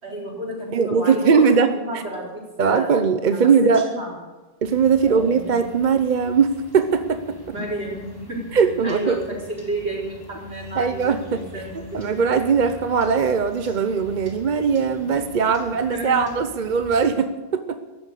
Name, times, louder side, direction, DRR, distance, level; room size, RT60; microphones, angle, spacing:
voice 1, 0.0-2.9 3.3-4.2 5.1-5.5 7.5-12.3 15.8-16.3, right 1 dB, 65° right, -3 dB, 5.1 m, -31 dB
voice 2, 0.7-2.0 2.6-3.8 4.6-7.4 8.5-9.2 10.8-11.5 11.9-17.8, right 6 dB, 45° right, 10 dB, 0.8 m, -20 dB
sound 1, 4.6-17.1, left 1 dB, 20° left, 2.8 m, -44 dB
14.0 x 11.5 x 8.4 m, 1.3 s
omnidirectional pair, 1.2 m